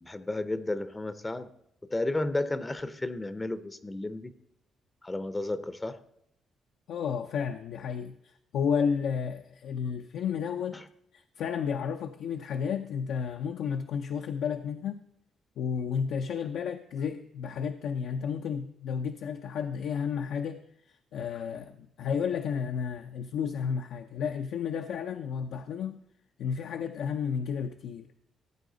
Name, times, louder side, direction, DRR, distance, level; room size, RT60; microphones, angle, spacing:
voice 1, 0.0-1.5 1.8-4.3 5.0-6.0 10.7-10.8, left 2 dB, 15° left, 13 dB, 0.5 m, -32 dB
voice 2, 6.9-10.8 11.1-15.0 15.6-20.6 20.9-26.0 26.4-28.1, left 7 dB, 80° left, 5 dB, 0.5 m, -32 dB
16.0 x 8.4 x 3.9 m, 0.78 s
cardioid pair, 105°, 0 cm